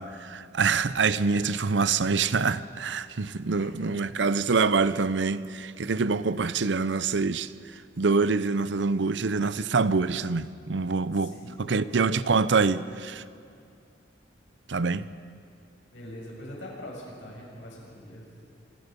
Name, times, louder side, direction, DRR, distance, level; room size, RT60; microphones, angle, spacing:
voice 1, 0.0-7.5 8.0-13.2 14.7-15.1, right 4 dB, 70° right, 0.7 m, -25 dB
voice 2, 3.6-4.1 11.1-12.3 15.9-18.2, left 1 dB, 85° left, 7.2 m, -43 dB
26.5 x 23.0 x 5.4 m
head